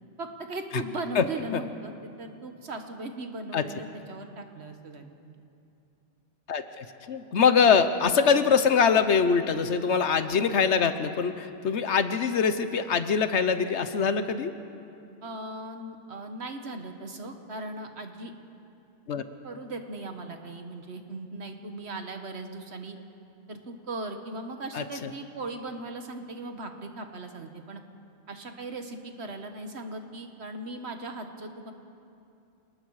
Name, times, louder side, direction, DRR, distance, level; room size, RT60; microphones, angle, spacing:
voice 1, 0.2-5.3 15.2-18.3 19.4-23.0 23.5-27.8 28.3-31.7, right 2 dB, 65° right, 6 dB, 1.7 m, -38 dB
voice 2, 6.5-14.5 19.1-19.2 24.7-25.1, left 6 dB, 70° left, 10 dB, 1.2 m, -23 dB
28.0 x 19.5 x 4.8 m, 2.6 s
omnidirectional pair, 1.2 m